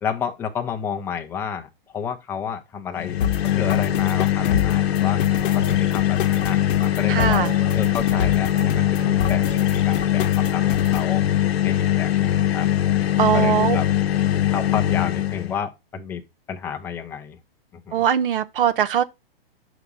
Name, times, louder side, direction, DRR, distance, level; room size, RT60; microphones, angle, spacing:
voice 1, 0.0-3.2 3.5-5.2 5.5-7.4 7.7-9.5 9.9-11.2 11.6-13.9 14.5-16.2 16.5-17.4 17.7-18.0, left 7 dB, 10° left, 0.5 m, -31 dB
sound 1, 3.0-15.6, left 12 dB, 85° left, 0.8 m, -21 dB
sound 2, 3.2-11.2, left 8 dB, 60° left, 0.9 m, -30 dB
sound 3, 3.7-11.1, right 5 dB, 20° right, 1.2 m, -42 dB
voice 2, 7.1-7.5 13.2-13.8 17.9-19.0, right 9 dB, 60° right, 0.9 m, -20 dB
5.9 x 4.9 x 5.4 m
hypercardioid pair, 155°, 30 cm